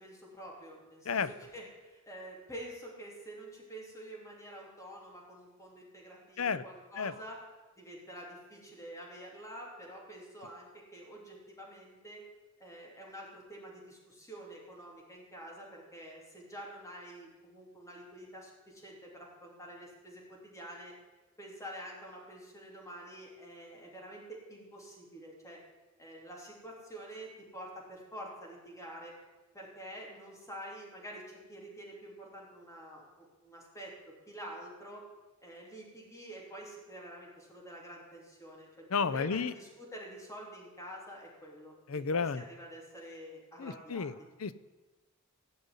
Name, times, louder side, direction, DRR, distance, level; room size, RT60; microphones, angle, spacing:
voice 1, 0.0-7.4 7.8-12.2 12.6-20.9 21.4-25.6 26.0-29.1 29.5-35.0 35.4-44.1, right 1 dB, 15° left, -3 dB, 3.1 m, -48 dB
voice 2, 38.9-39.5 41.9-42.4 43.6-44.1 44.4-44.5, left 5 dB, 80° left, 15 dB, 0.6 m, -31 dB
16.5 x 5.5 x 9.7 m, 1.2 s
head